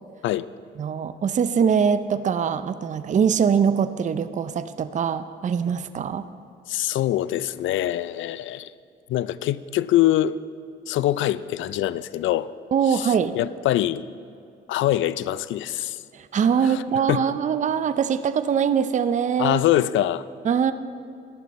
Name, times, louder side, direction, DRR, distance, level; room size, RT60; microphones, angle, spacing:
voice 1, 0.8-6.2 12.7-13.4 16.1-19.6 20.4-20.7, right 7 dB, 40° right, 0.5 m, -22 dB
voice 2, 6.7-8.7 9.1-10.4 10.9-12.5 12.9-14.1 14.7-16.0 16.6-16.8 17.1-17.3 19.4-20.2, left 13 dB, 75° left, 0.4 m, -24 dB
14.5 x 11.0 x 4.2 m
cardioid pair, 90°, 20 cm